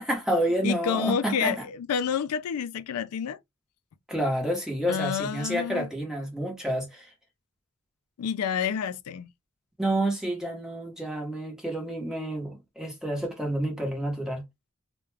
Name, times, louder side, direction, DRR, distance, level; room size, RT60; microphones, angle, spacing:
voice 1, 0.0-1.6 4.1-7.1 9.8-14.4, right 1 dB, 5° right, 0.9 m, -29 dB
voice 2, 0.6-3.4 4.9-5.9 8.2-9.3, left 7 dB, 80° left, 0.3 m, -29 dB
2.3 x 2.2 x 3.0 m
head